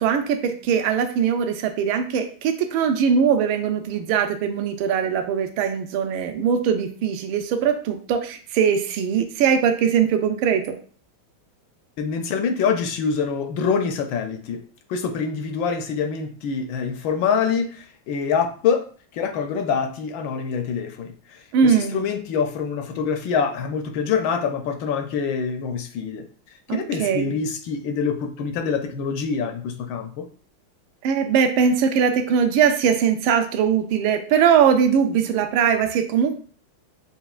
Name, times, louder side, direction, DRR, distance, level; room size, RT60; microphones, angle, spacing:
voice 1, 0.0-10.8 21.5-22.0 26.7-27.3 31.0-36.4, right 7 dB, 80° right, 6 dB, 1.4 m, -21 dB
voice 2, 12.0-14.6 14.9-26.3 26.7-30.3, left 6 dB, 75° left, 6 dB, 1.2 m, -25 dB
6.7 x 2.3 x 2.3 m, 0.43 s
omnidirectional pair, 2.3 m